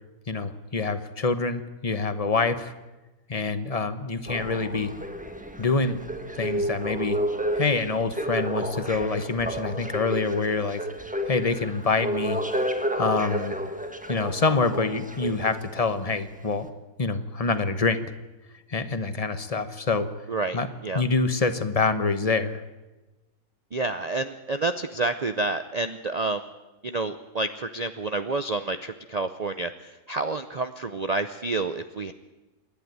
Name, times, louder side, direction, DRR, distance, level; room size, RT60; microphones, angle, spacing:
voice 1, 0.3-2.7 3.3-4.9 5.6-6.0 6.4-7.2 7.5-10.8 11.3-12.4 13.0-13.6 14.1-16.7 17.0-18.1 18.7-20.1 20.5-20.7 20.9-22.6, left 4 dB, 25° left, 11 dB, 1.0 m, -26 dB
sound 1, 4.3-15.9 16.5-16.6, equal, 5° right, 1.1 m, -31 dB
voice 2, 20.3-21.0 23.7-26.5 26.8-32.1, right 3 dB, 60° right, 10 dB, 0.4 m, -29 dB
27.5 x 11.0 x 9.4 m, 1.1 s
omnidirectional pair, 1.7 m